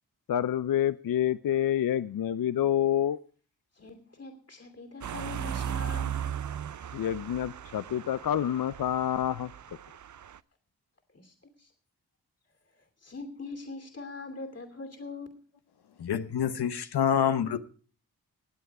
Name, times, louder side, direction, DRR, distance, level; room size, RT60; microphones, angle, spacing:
voice 1, 0.3-3.2 6.9-9.5, left 10 dB, 60° left, 0.6 m, -27 dB
voice 2, 3.7-6.3 11.1-11.7 12.8-15.4, left 2 dB, 40° left, 2.7 m, -42 dB
sound 1, 5.0-10.4, right 9 dB, 50° right, 0.6 m, -37 dB
voice 3, 16.0-17.6, left 8 dB, 80° left, 1.0 m, -27 dB
19.5 x 8.0 x 4.7 m
cardioid pair, 40°, 39 cm